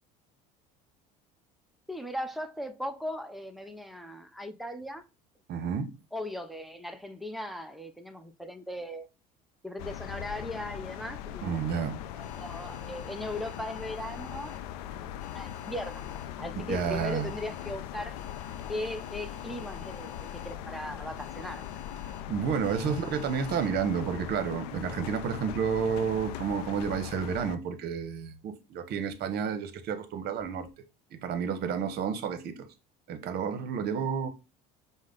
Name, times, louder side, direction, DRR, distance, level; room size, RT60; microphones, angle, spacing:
voice 1, 1.9-5.0 6.1-9.1 9.6-11.6 12.1-14.6 15.3-16.0 16.4-18.2 18.7-21.7 22.7-23.0, left 1 dB, ahead, 0.7 m, -38 dB
voice 2, 5.5-5.9 11.4-12.0 16.7-17.3 22.3-30.7 31.1-32.6 33.1-34.3, right 7 dB, 55° right, 0.9 m, -30 dB
sound 1, 9.8-27.6, left 11 dB, 80° left, 0.4 m, -40 dB
sound 2, 12.2-14.6 15.2-16.3 16.7-17.7 18.2-20.5 21.2-22.2 22.6-23.7, left 6 dB, 35° left, 0.9 m, -50 dB
5.1 x 2.1 x 3.8 m
hypercardioid pair, 80°, 20 cm